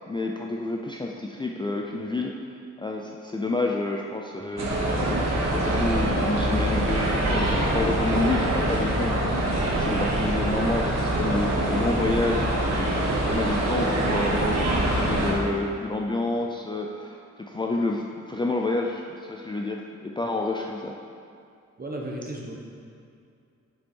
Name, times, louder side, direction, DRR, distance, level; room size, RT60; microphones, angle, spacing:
voice 1, 0.0-2.4 2.8-17.2 17.5-21.0, left 2 dB, 15° left, 0 dB, 0.4 m, -29 dB
sound 1, 4.6-15.3, right 1 dB, 60° right, 1.5 m, -24 dB
voice 2, 21.8-22.6, right 1 dB, 30° right, 0 dB, 1.1 m, -34 dB
7.9 x 5.3 x 4.5 m, 2.4 s
wide cardioid pair, 125°, 30 cm